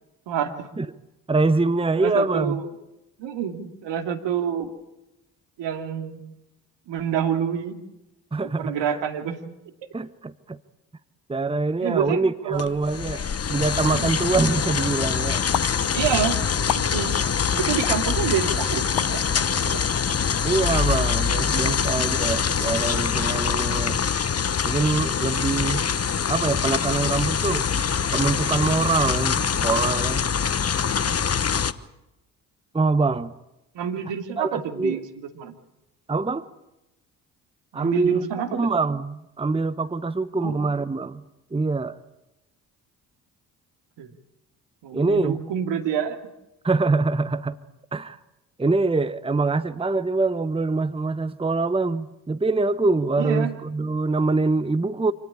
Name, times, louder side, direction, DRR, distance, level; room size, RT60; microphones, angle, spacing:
voice 1, 0.3-0.7 2.0-2.6 3.2-4.7 5.6-6.2 6.9-7.8 8.6-9.4 11.8-12.6 13.9-14.1 15.9-16.4 16.7-17.2 17.5-19.8 21.6-22.0 23.8-24.0 33.7-35.0 35.4-35.5 37.7-38.7 40.4-40.5 44.0-44.1 44.8-46.2 53.2-53.6, right 8 dB, 65° right, 5 dB, 2.7 m, -28 dB
voice 2, 1.3-2.6 8.3-9.0 9.9-10.6 11.3-15.4 20.4-24.0 24.6-25.8 26.3-27.7 28.1-30.2 32.7-33.3 34.4-35.0 36.1-36.5 37.7-41.2 41.5-42.0 44.9-45.4 46.6-47.6 47.9-48.2 48.6-55.1, right 3 dB, 10° right, 14 dB, 1.0 m, -24 dB
sound 1, 12.6-31.7, left 7 dB, 30° left, 1.2 m, -24 dB
sound 2, 15.5-15.7 16.7-16.9 17.8-17.9 19.0-19.1, left 14 dB, 60° left, 1.1 m, -26 dB
27.0 x 18.0 x 8.7 m, 0.95 s
hypercardioid pair, 45°, 47 cm